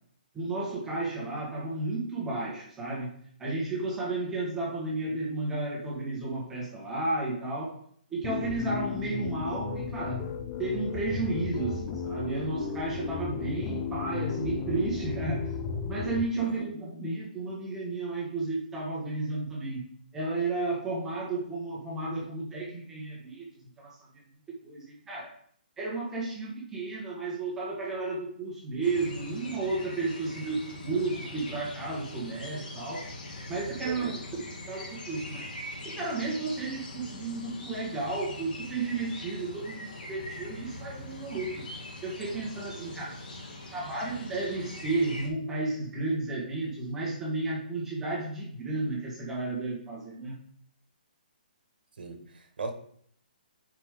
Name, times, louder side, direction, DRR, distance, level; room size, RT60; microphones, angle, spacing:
voice 1, 0.3-3.1 3.4-7.8 8.1-10.2 10.6-15.5 15.9-19.8 20.1-23.4 23.8-24.0 24.6-25.3 25.8-33.1 33.5-35.4 35.8-41.6 42.0-43.2 43.7-50.4, right 3 dB, 5° right, -4 dB, 1.7 m, -32 dB
sound 1, 8.2-16.2, left 6 dB, 20° left, 0.6 m, -34 dB
voice 2, 16.4-16.7 33.8-34.2 42.8-42.9 52.0-52.7, right 4 dB, 75° right, 5 dB, 1.8 m, -38 dB
sound 2, 28.8-45.3, left 1 dB, 65° left, 2.4 m, -42 dB
9.7 x 5.1 x 3.8 m, 0.63 s
hypercardioid pair, 170°, 5 cm